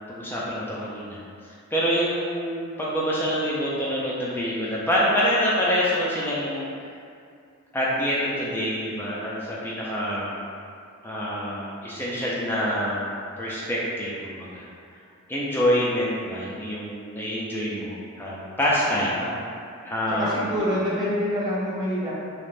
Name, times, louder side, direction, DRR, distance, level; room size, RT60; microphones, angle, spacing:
voice 1, 0.1-1.2 1.7-6.7 7.7-10.3 11.0-13.1 13.4-14.7 15.3-19.2 19.8-20.6, equal, 10° left, -7 dB, 0.3 m, -26 dB
voice 2, 18.9-19.5 20.1-22.1, equal, 20° right, -12 dB, 0.8 m, -27 dB
2.4 x 2.1 x 3.1 m, 2.3 s
head